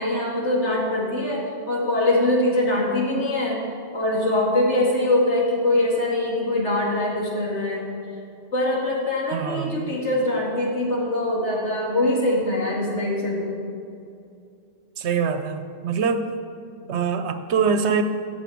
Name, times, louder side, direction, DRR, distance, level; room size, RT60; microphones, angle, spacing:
voice 1, 0.0-3.6 3.9-7.9 8.5-13.6, left 1 dB, 80° left, -3 dB, 2.6 m, -23 dB
voice 2, 9.3-9.9 15.0-16.3 16.9-18.0, right 6 dB, 75° right, 9 dB, 1.0 m, -24 dB
9.2 x 7.0 x 8.5 m, 2.5 s
omnidirectional pair, 1.2 m